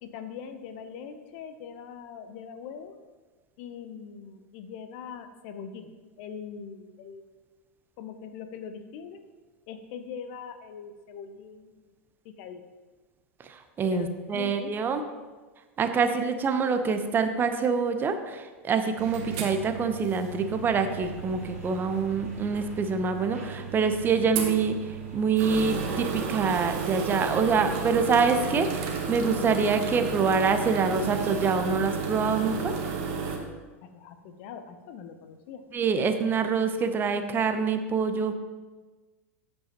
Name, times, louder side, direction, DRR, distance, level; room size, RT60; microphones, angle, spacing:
voice 1, 0.0-2.9 3.6-5.9 6.2-7.3 8.0-9.2 9.7-11.9 12.2-12.6 13.9-14.7 33.8-35.6, left 7 dB, 50° left, 9 dB, 0.7 m, -42 dB
voice 2, 13.4-15.0 15.8-32.7 35.7-38.3, right 5 dB, 25° right, 8 dB, 0.7 m, -26 dB
sound 1, 19.0-33.4, right 5 dB, 50° right, 1.4 m, -33 dB
sound 2, 20.4-33.0, right 2 dB, 80° right, 1.8 m, -49 dB
14.0 x 5.5 x 2.9 m, 1.3 s
figure-of-eight pair, 85°, 8 cm